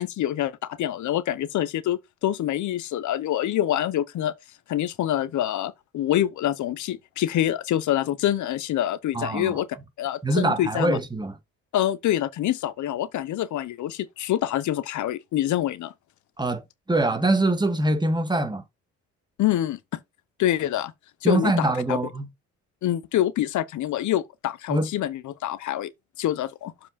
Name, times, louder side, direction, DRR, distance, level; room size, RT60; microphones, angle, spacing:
voice 1, 0.0-4.3 4.7-9.7 10.0-11.0 11.7-15.9 19.4-20.0 20.4-20.9 21.2-22.0 22.8-25.9 26.2-26.7, left 12 dB, 75° left, 0.8 m, -26 dB
voice 2, 9.1-9.5 10.2-11.3 16.4-18.6 21.2-22.3 24.7-24.9, right 2 dB, 15° right, 1.7 m, -24 dB
7.3 x 4.9 x 4.2 m
cardioid pair, 90°, 30 cm